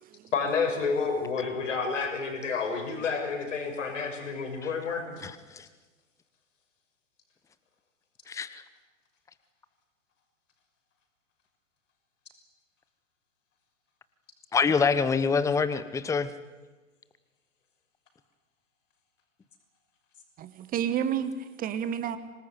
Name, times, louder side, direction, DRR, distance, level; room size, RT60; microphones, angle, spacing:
voice 1, 0.3-5.2, left 5 dB, 65° left, 5 dB, 6.3 m, -30 dB
voice 2, 5.2-5.7 8.3-8.6 14.5-16.3, left 5 dB, 10° left, 14 dB, 1.0 m, -26 dB
voice 3, 20.4-22.2, right 9 dB, 20° right, 12 dB, 1.3 m, -30 dB
26.0 x 19.5 x 9.5 m, 1.2 s
figure-of-eight pair, 115°, 39 cm